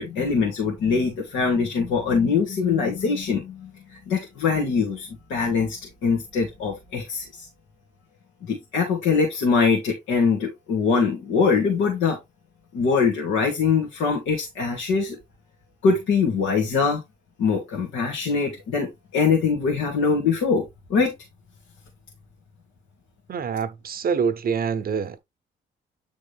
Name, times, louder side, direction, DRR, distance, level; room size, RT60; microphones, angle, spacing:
voice 1, 0.0-7.5 8.5-12.2 12.7-15.2 15.8-17.0 17.4-21.1, left 5 dB, 90° left, 2.0 m, -23 dB
voice 2, 23.3-25.2, right 6 dB, 50° right, 0.7 m, -25 dB
8.7 x 3.6 x 3.4 m
cardioid pair, 90°, 20 cm